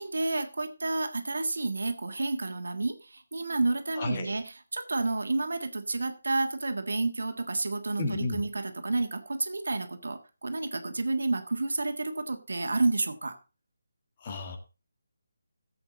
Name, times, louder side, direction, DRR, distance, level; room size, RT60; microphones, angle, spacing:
voice 1, 0.0-13.4, right 2 dB, 75° right, 7 dB, 1.7 m, -30 dB
voice 2, 4.0-4.3 8.0-8.4 14.2-14.6, left 3 dB, 35° left, 5 dB, 2.0 m, -32 dB
15.0 x 7.9 x 4.2 m, 0.31 s
figure-of-eight pair, 155°, 0 cm